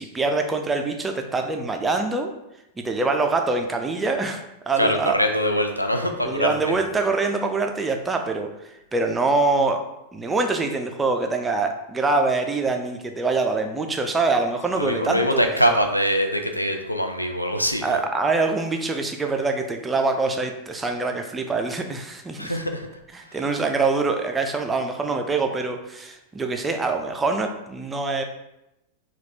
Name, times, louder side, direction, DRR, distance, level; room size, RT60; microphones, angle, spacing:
voice 1, 0.0-2.3 2.8-5.2 6.2-8.5 8.9-9.8 10.1-15.4 17.8-22.6 23.1-28.2, right 3 dB, 15° right, 4 dB, 0.5 m, -24 dB
voice 2, 4.8-6.7 14.8-18.0 22.4-22.9, equal, 90° left, 5 dB, 0.4 m, -23 dB
4.1 x 2.4 x 4.2 m, 0.88 s
figure-of-eight pair, 90°, 0 cm